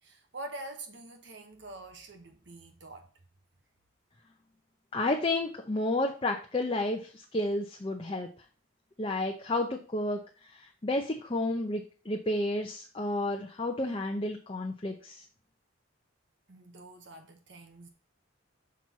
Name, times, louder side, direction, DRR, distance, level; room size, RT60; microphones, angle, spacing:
voice 1, 0.0-3.1 16.5-17.9, right 2 dB, 60° right, 1.0 m, -45 dB
voice 2, 4.9-8.3 9.0-15.2, left 2 dB, 25° left, 0.7 m, -31 dB
6.1 x 4.5 x 5.6 m
head